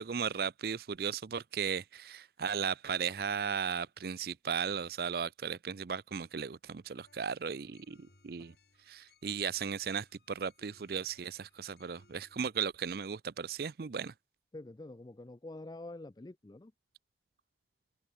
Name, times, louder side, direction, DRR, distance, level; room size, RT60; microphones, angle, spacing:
voice 1, 0.0-8.5 8.9-14.1, right 6 dB, 55° right, 0.5 m, -36 dB
sound 1, 7.0-12.4, left 2 dB, 60° left, 3.7 m, -66 dB
voice 2, 14.5-16.7, left 2 dB, 20° left, 0.4 m, -46 dB
open air
head